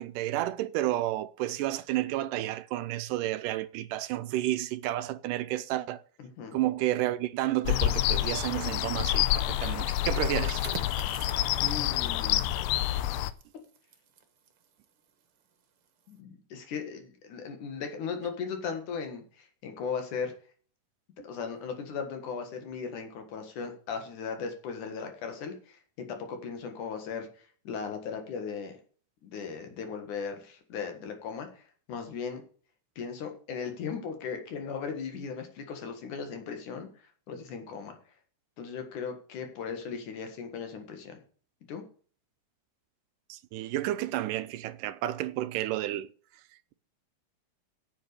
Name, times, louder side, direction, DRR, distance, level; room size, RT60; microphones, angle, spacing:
voice 1, 0.0-6.0 6.5-10.6 43.3-46.1, right 14 dB, 80° right, 2.1 m, -31 dB
voice 2, 6.2-6.6 11.6-12.4 16.1-20.3 21.2-28.8 29.2-32.4 33.0-38.0 38.6-41.2 41.7-41.8, left 6 dB, 65° left, 3.1 m, -37 dB
sound 1, 7.7-13.3, left 14 dB, 90° left, 2.4 m, -28 dB
sound 2, 10.0-15.5 15.9-16.1, right 6 dB, 55° right, 1.9 m, -47 dB
8.9 x 8.0 x 6.7 m
omnidirectional pair, 3.9 m